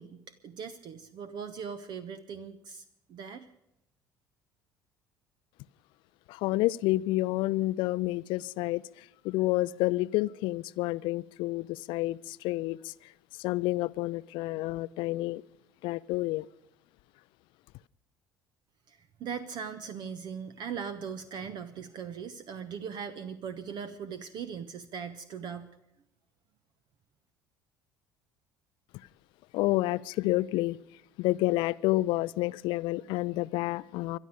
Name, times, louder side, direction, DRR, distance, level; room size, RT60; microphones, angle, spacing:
voice 1, 0.0-2.8 3.1-3.5 18.9-25.7, right 7 dB, 50° right, 11 dB, 1.0 m, -39 dB
voice 2, 6.3-8.8 9.2-12.9 13.4-15.4 15.8-16.5 29.5-30.8 31.2-34.2, left 18 dB, 55° left, 19 dB, 0.5 m, -29 dB
22.5 x 12.0 x 5.1 m, 0.84 s
figure-of-eight pair, 55°, 10 cm